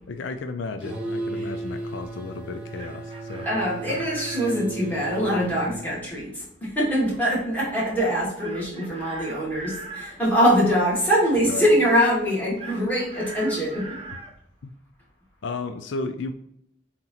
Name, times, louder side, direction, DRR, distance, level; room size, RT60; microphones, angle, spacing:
voice 1, 0.1-3.5 3.9-4.1 11.5-11.7 14.6-14.7 15.4-16.3, left 3 dB, 75° left, 9 dB, 0.4 m, -33 dB
sound 1, 0.8-5.7, right 2 dB, 5° right, 1.1 m, -34 dB
Chicken rooster, 2.5-4.6 8.4-10.2 12.6-14.3, right 3 dB, 30° right, 0.8 m, -40 dB
voice 2, 3.5-14.0, equal, 10° left, -7 dB, 2.4 m, -23 dB
7.6 x 3.0 x 4.1 m, 0.73 s
head